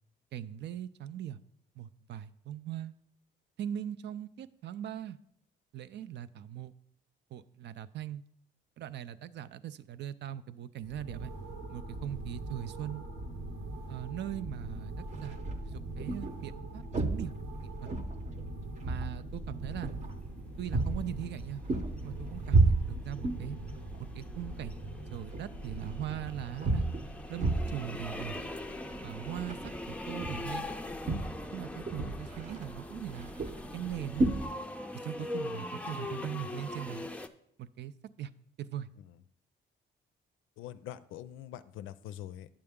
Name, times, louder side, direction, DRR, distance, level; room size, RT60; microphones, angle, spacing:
voice 1, 0.3-1.4 1.8-2.9 3.6-5.2 5.7-6.7 7.3-8.2 8.8-11.3 11.7-13.1 13.9-17.3 17.6-17.9 18.8-20.1 20.6-21.6 22.0-23.6 24.0-26.9 27.3-28.4 29.0-30.7 31.5-33.3 33.7-34.3 35.0-37.1 37.6-37.9 38.2-38.3 38.6-38.9, right 11 dB, 60° right, 13 dB, 0.4 m, -40 dB
sound 1, 10.8-26.8, right 1 dB, 90° right, 1.4 m, -43 dB
sound 2, 15.0-34.5, right 2 dB, 40° right, 0.8 m, -34 dB
sound 3, 21.4-37.3, left 2 dB, 5° left, 0.4 m, -42 dB
voice 2, 40.6-42.5, left 12 dB, 85° left, 14 dB, 0.4 m, -44 dB
8.7 x 6.7 x 3.6 m, 0.71 s
cardioid pair, 90°, 20 cm